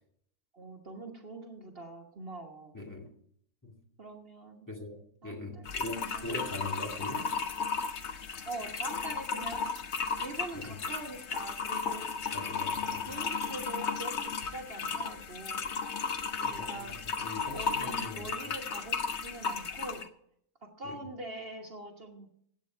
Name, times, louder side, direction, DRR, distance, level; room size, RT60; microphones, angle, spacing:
voice 1, 0.5-2.7 4.0-4.7 5.2-6.5 8.4-9.8 10.2-12.3 13.1-15.7 16.2-16.9 17.5-20.0 20.6-22.3, right 2 dB, 45° right, 2 dB, 1.6 m, -44 dB
voice 2, 2.7-3.2 3.6-3.8 4.7-7.3 10.5-10.8 12.3-13.1 16.4-18.6 20.8-21.0, left 2 dB, 15° left, -1 dB, 2.0 m, -42 dB
sound 1, 5.7-20.1, left 5 dB, 55° left, 1.2 m, -35 dB
15.0 x 8.8 x 4.5 m, 0.67 s
omnidirectional pair, 1.4 m